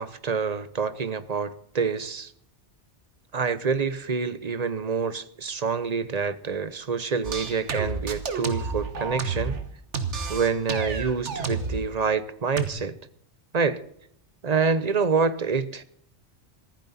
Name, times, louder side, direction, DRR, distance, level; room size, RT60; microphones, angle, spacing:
voice 1, 0.0-2.3 3.3-9.6 10.3-12.9 13.5-13.8 14.4-15.8, right 5 dB, 40° right, 0.8 m, -27 dB
sound 1, 7.2-9.6 9.9-11.8 12.6-12.7, right 5 dB, 80° right, 1.6 m, -30 dB
14.5 x 14.5 x 4.1 m
omnidirectional pair, 1.2 m